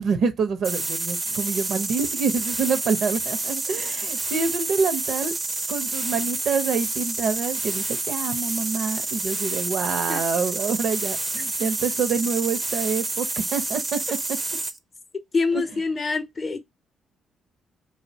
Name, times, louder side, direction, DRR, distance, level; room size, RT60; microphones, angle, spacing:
voice 1, 0.0-5.3 5.7-14.0 14.3-14.4 15.5-15.8, right 5 dB, 70° right, 0.6 m, -26 dB
sound 1, 0.6-14.8, right 3 dB, 25° right, 0.4 m, -29 dB
voice 2, 15.3-16.6, left 4 dB, 35° left, 0.5 m, -25 dB
2.7 x 2.1 x 2.6 m
cardioid pair, 90°, 0 cm